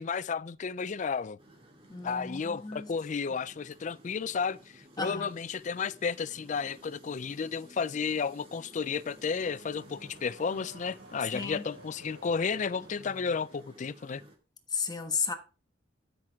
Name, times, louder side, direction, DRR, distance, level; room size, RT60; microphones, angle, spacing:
voice 1, 0.0-1.4 2.0-14.2, left 5 dB, 40° left, 0.4 m, -33 dB
sound 1, 1.4-14.4, right 1 dB, 30° right, 2.1 m, -55 dB
voice 2, 1.9-2.9 5.0-5.3 11.3-11.6 14.7-15.3, left 5 dB, 20° left, 1.2 m, -33 dB
Car / Accelerating revving vroom, 8.6-13.7, right 1 dB, 65° right, 2.1 m, -53 dB
12.5 x 6.0 x 3.6 m
head